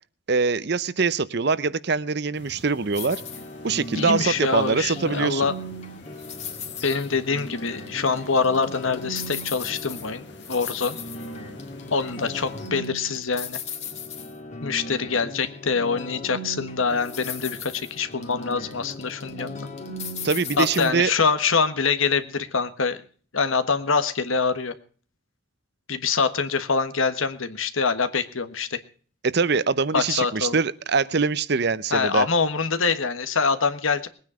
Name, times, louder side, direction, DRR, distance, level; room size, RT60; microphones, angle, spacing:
voice 1, 0.3-3.2 3.6-5.5 20.2-21.1 29.2-32.2, right 4 dB, 55° right, 17 dB, 0.7 m, -23 dB
sound 1, 2.3-12.7, left 2 dB, 60° left, 2.0 m, -47 dB
sound 2, 2.9-20.9, left 2 dB, 35° left, 2.1 m, -37 dB
voice 2, 3.9-5.5 6.8-10.2 10.5-11.0 11.9-13.6 14.6-19.7 20.6-23.0 23.3-24.7 25.9-28.8 29.9-30.6 31.9-34.1, left 5 dB, 80° left, 10 dB, 1.4 m, -24 dB
20.5 x 9.5 x 4.9 m, 0.43 s
head